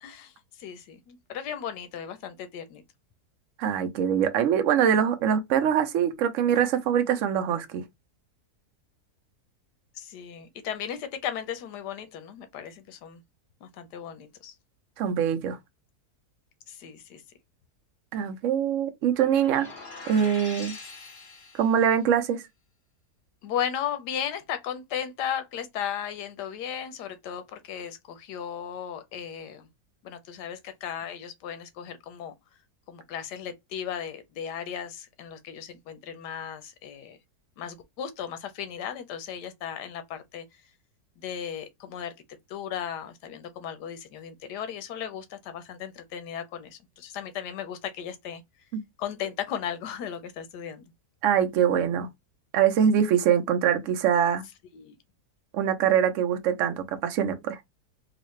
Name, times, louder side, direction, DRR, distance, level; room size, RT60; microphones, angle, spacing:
voice 1, 0.0-2.8 9.9-13.2 13.6-14.5 16.7-17.2 23.4-29.7 30.0-32.3 32.9-37.2 37.6-40.5 41.2-42.1 42.5-48.4 49.0-50.8 54.7-55.0, left 9 dB, 85° left, 1.3 m, -36 dB
voice 2, 3.6-7.8 15.0-15.6 18.1-19.7 20.1-20.7 21.5-22.4 48.7-48.8 51.2-52.1 52.5-54.4 55.5-57.6, right 8 dB, 65° right, 0.8 m, -23 dB
sound 1, 19.1-21.9, left 3 dB, 35° left, 1.1 m, -43 dB
3.9 x 2.4 x 3.1 m
omnidirectional pair, 1.8 m